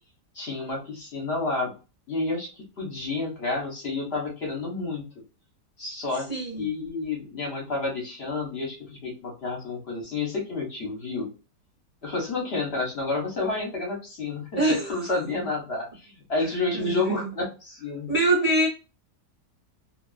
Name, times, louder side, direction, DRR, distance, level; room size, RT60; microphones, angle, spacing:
voice 1, 0.3-1.7 2.1-5.1 5.8-6.3 6.6-11.3 12.0-18.1, left 3 dB, 50° left, 0 dB, 0.9 m, -30 dB
voice 2, 6.3-6.7 14.6-15.0 16.7-17.3 18.1-18.7, right 2 dB, 40° right, -3 dB, 0.5 m, -24 dB
2.5 x 2.3 x 2.2 m, 0.32 s
omnidirectional pair, 1.7 m